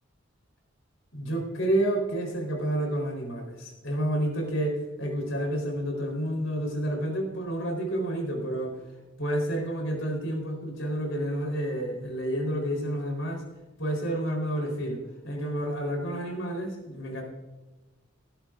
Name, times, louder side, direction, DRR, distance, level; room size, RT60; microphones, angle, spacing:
voice 1, 1.1-8.8 9.2-13.4 13.8-17.2, right 1 dB, 75° left, 2 dB, 4.1 m, -30 dB
18.5 x 11.5 x 2.6 m, 1.2 s
head